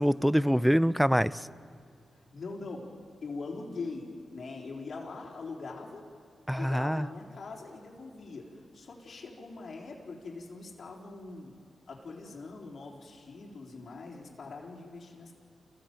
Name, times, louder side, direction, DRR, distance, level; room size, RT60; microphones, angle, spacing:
voice 1, 0.0-1.5 6.5-7.1, equal, ahead, 17 dB, 0.6 m, -25 dB
voice 2, 2.1-2.9 3.2-6.0 6.5-11.6 11.9-15.3, left 3 dB, 60° left, -2 dB, 3.9 m, -42 dB
30.0 x 15.5 x 7.9 m, 2.3 s
cardioid pair, 55°, 0 cm